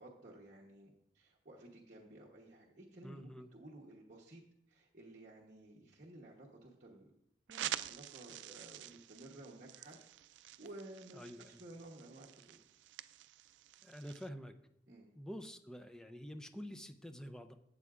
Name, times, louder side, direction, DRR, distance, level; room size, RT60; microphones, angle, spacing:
voice 1, 0.0-4.4 4.7-7.1 7.5-10.0 10.6-12.6 14.9-15.1, right 1 dB, 45° right, -4 dB, 1.0 m, -54 dB
voice 2, 3.0-3.5 11.1-11.6 13.8-14.5 15.2-17.5, equal, 5° left, 7 dB, 0.5 m, -48 dB
sound 1, 7.5-14.3, right 12 dB, 90° right, 0.3 m, -47 dB
12.0 x 8.2 x 2.4 m, 0.79 s
head